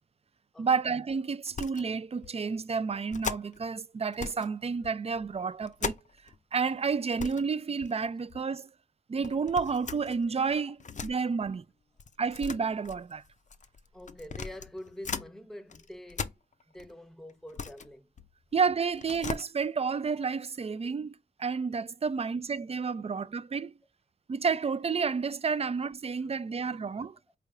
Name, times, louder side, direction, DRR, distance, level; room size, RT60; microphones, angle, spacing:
voice 1, 0.6-6.0 6.5-8.7 9.1-10.7 11.0-11.6 12.2-13.2 18.5-21.1 21.4-23.7 24.3-27.1, right 5 dB, 30° right, 0.4 m, -30 dB
sound 1, 1.5-1.9 2.2-2.4 3.1-3.7 4.1-4.5 4.8-6.4 6.7-6.8 7.1-7.5 7.8-8.4 9.2-11.2 12.0-15.3 15.7-16.9 17.3-18.6 18.9-19.4, left 5 dB, 40° left, 0.5 m, -39 dB
voice 2, 13.9-16.3 16.7-18.1 22.2-22.3, left 1 dB, ahead, 0.9 m, -46 dB
4.6 x 3.4 x 2.5 m
cardioid pair, 50°, 19 cm